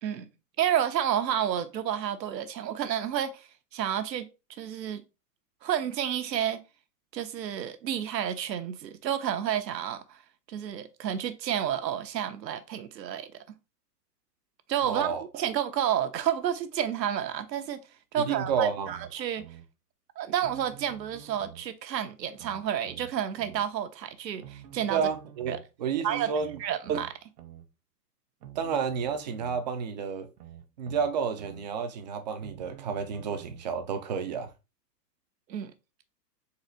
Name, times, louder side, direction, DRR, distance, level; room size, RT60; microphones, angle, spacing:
voice 1, 0.6-4.3 4.6-5.0 5.6-6.6 7.1-10.2 10.5-13.6 14.7-15.1 15.3-17.8 18.1-19.4 20.2-25.0 25.5-25.6 26.0-27.2 35.5-35.7, right 9 dB, 90° right, 0.8 m, -30 dB
voice 2, 14.8-15.2 18.2-18.9 24.9-25.5 25.8-26.6 28.6-30.3 30.8-34.5, right 6 dB, 30° right, 0.4 m, -30 dB
sound 1, 18.4-19.6 20.4-21.7 22.4-23.6 24.4-25.7 26.4-27.6 28.4-29.7 30.4-31.6 32.4-33.7 34.4-34.5, right 11 dB, 70° right, 1.1 m, -48 dB
4.0 x 2.6 x 4.3 m
hypercardioid pair, 140°, 49 cm